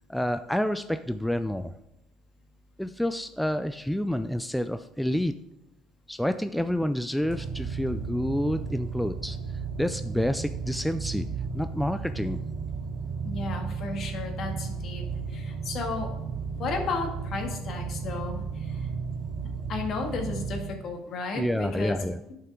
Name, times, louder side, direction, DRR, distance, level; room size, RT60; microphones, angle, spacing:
voice 1, 0.1-1.7 2.8-5.3 6.1-9.4 9.8-11.3 11.5-12.4 21.4-22.2, equal, ahead, 9 dB, 0.3 m, -28 dB
sound 1, 7.2-20.6, right 5 dB, 70° right, 2.2 m, -34 dB
voice 2, 13.2-15.0 15.3-16.1 16.6-18.9 19.7-22.0, left 4 dB, 55° left, 3 dB, 1.8 m, -33 dB
11.0 x 5.6 x 3.6 m, 0.88 s
cardioid pair, 105°, 0 cm